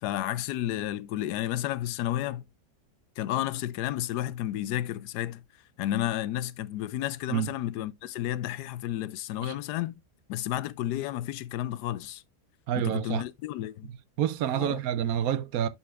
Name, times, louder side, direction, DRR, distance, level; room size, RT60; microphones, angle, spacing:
voice 1, 0.0-2.4 3.2-5.4 5.8-9.9 10.3-12.2 12.8-13.9 14.5-14.8, left 13 dB, 90° left, 1.1 m, -32 dB
voice 2, 12.7-13.2 14.2-15.7, right 10 dB, 70° right, 1.0 m, -28 dB
11.0 x 4.3 x 2.3 m
omnidirectional pair, 1.7 m